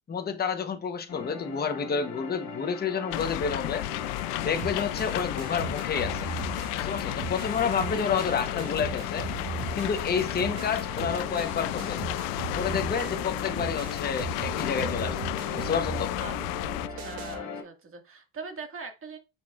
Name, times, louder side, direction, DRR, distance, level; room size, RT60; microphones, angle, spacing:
voice 1, 0.1-3.9 4.4-6.3 6.8-9.3 9.7-12.0 12.5-15.2 15.5-16.1, left 6 dB, 20° left, 0.9 m, -29 dB
sound 1, 1.1-17.6, left 3 dB, 45° left, 2.9 m, -39 dB
sound 2, 3.1-16.9, left 19 dB, 80° left, 0.6 m, -33 dB
sound 3, 4.6-17.4, right 6 dB, 80° right, 2.4 m, -39 dB
voice 2, 17.0-19.2, right 4 dB, 25° right, 1.8 m, -41 dB
9.1 x 6.3 x 2.4 m
cardioid pair, 135°, 48 cm